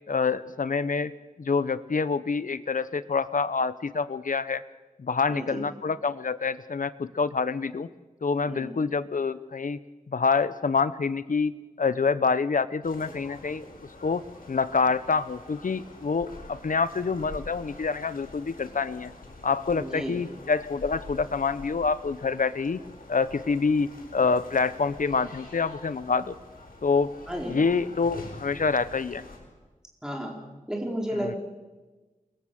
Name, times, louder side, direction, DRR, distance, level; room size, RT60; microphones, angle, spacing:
voice 1, 0.1-1.1 1.4-4.6 5.0-7.9 8.2-9.8 10.1-11.5 11.8-13.6 14.0-19.1 19.4-22.8 23.1-26.4 26.8-27.1 27.5-29.2 31.2-31.3, left 4 dB, 70° left, 14 dB, 0.9 m, -26 dB
voice 2, 5.3-5.6 8.5-8.7 19.8-20.1 27.3-27.6 30.0-30.3 30.7-31.4, equal, 5° right, 0 dB, 4.5 m, -32 dB
sound 1, 12.8-29.4, left 2 dB, 85° left, 8.0 m, -46 dB
29.5 x 22.0 x 7.7 m, 1.2 s
wide cardioid pair, 90°, 14 cm